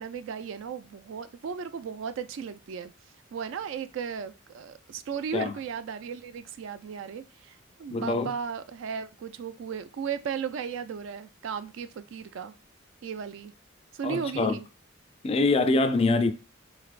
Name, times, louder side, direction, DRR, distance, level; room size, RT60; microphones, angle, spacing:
voice 1, 0.0-2.9 3.3-12.5 13.0-13.5 13.9-14.7, right 6 dB, 65° right, 0.3 m, -35 dB
voice 2, 7.9-8.3 14.0-14.5 15.2-16.3, left 3 dB, 30° left, 0.3 m, -24 dB
3.9 x 3.2 x 2.4 m
head